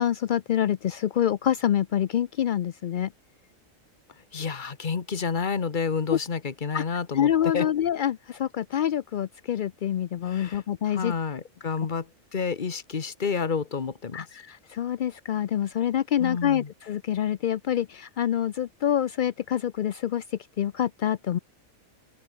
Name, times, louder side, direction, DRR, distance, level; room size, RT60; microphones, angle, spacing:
voice 1, 0.0-3.1 6.1-6.2 6.7-6.8 7.1-11.1 14.1-20.2 20.6-21.4, left 10 dB, 70° left, 0.4 m, -26 dB
voice 2, 4.3-7.7 10.3-14.3 16.2-16.7, left 5 dB, 40° left, 1.3 m, -30 dB
open air
omnidirectional pair, 1.4 m